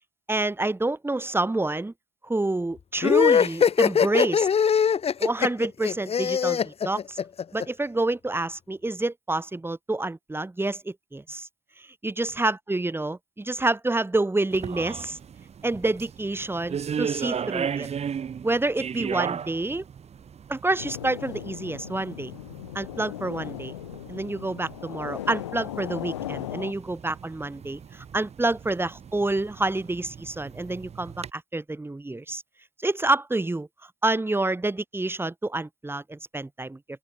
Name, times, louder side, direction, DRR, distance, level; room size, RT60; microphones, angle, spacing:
voice 1, 0.3-1.9 2.2-4.5 5.2-7.2 7.5-11.5 11.8-15.2 15.6-17.9 18.4-19.8 20.5-22.3 22.7-23.7 24.1-32.4 32.8-33.7 34.0-36.8, right 2 dB, 15° right, 5.5 m, -28 dB
sound 1, 3.0-7.6, left 7 dB, 45° left, 2.3 m, -21 dB
sound 2, 14.5-31.3, right 7 dB, 45° right, 5.1 m, -37 dB
sound 3, 20.8-26.7, left 14 dB, 90° left, 5.2 m, -37 dB
open air
hypercardioid pair, 55°, 15 cm